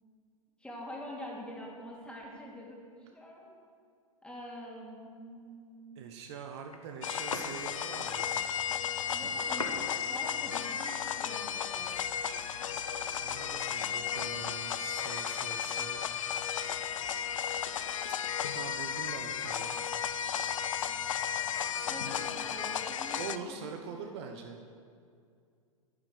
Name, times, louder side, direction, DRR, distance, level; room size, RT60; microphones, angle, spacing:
voice 1, 0.6-3.6 4.2-6.0 9.1-12.0 13.8-14.4 21.9-23.6 23.9-24.4, equal, 5° left, -3 dB, 2.9 m, -46 dB
voice 2, 6.0-8.4 13.2-16.1 18.5-20.0 23.2-24.6, right 6 dB, 50° right, 4 dB, 1.0 m, -44 dB
sound 1, 6.7-12.3, left 2 dB, 85° left, 1.2 m, -45 dB
sound 2, 7.0-23.4, left 8 dB, 65° left, 0.6 m, -34 dB
10.5 x 10.0 x 6.7 m, 2.3 s
figure-of-eight pair, 95°, 18 cm